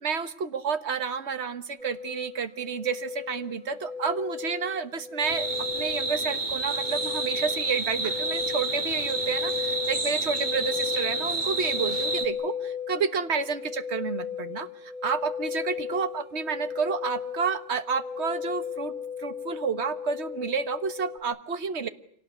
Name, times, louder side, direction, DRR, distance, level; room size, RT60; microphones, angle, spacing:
voice 1, 0.0-12.5 12.9-18.9 19.2-21.9, right 5 dB, 60° right, 11 dB, 1.6 m, -30 dB
sound 1, 1.8-21.2, left 7 dB, 30° left, 4.3 m, -36 dB
sound 2, 5.2-12.3, right 2 dB, 40° right, 2.2 m, -29 dB
26.5 x 18.5 x 9.5 m, 0.67 s
omnidirectional pair, 1.3 m